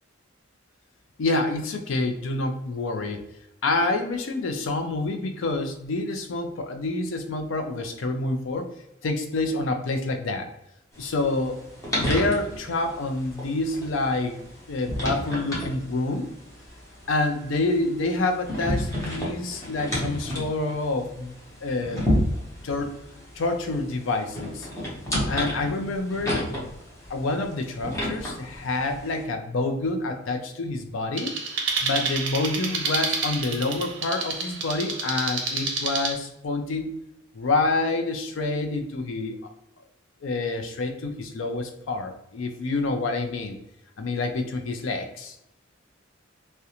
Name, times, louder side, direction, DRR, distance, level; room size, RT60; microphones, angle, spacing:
voice 1, 1.2-3.2 3.6-8.7 9.0-10.5 11.0-11.6 12.0-16.3 17.1-21.3 21.6-22.0 22.6-22.9 23.4-24.7 25.3-26.5 27.1-31.3 31.8-36.9 37.3-39.4 40.2-43.6 44.0-45.4, left 2 dB, 75° left, 6 dB, 0.4 m, -27 dB
sound 1, 10.9-29.2, equal, 15° left, 0.7 m, -32 dB
sound 2, 31.2-36.1, right 4 dB, 65° right, 0.5 m, -29 dB
2.4 x 2.1 x 2.8 m, 0.79 s
head